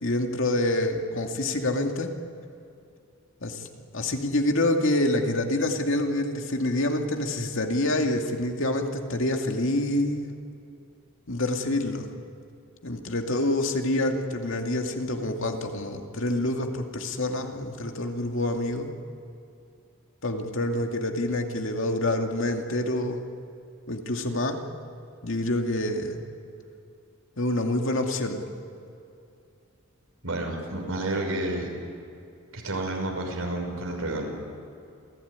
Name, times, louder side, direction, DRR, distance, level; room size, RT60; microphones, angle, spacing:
voice 1, 0.0-2.1 3.4-10.3 11.3-12.1 12.8-18.9 20.2-23.2 23.9-24.6 25.2-26.2 27.4-28.4, left 1 dB, 65° left, 3 dB, 2.4 m, -27 dB
voice 2, 30.2-31.7 32.5-34.3, right 1 dB, 90° right, 1 dB, 6.1 m, -30 dB
27.5 x 17.0 x 9.7 m, 2.6 s
head